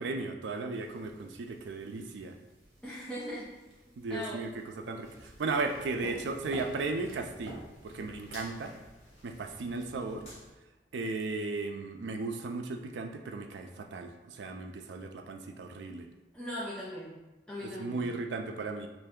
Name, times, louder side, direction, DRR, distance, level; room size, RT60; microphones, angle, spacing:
voice 1, 0.0-2.4 4.0-8.8 9.2-10.3 10.9-16.1 17.8-18.9, right 3 dB, 85° right, 5 dB, 0.4 m, -36 dB
sound 1, 0.7-8.9, right 1 dB, 55° right, 0.9 m, -51 dB
voice 2, 2.8-3.5 4.1-4.6 16.3-18.0, equal, 5° left, -8 dB, 0.5 m, -40 dB
sound 2, 5.0-10.5, equal, 40° left, 1.4 m, -54 dB
3.2 x 2.6 x 3.5 m, 1.1 s
head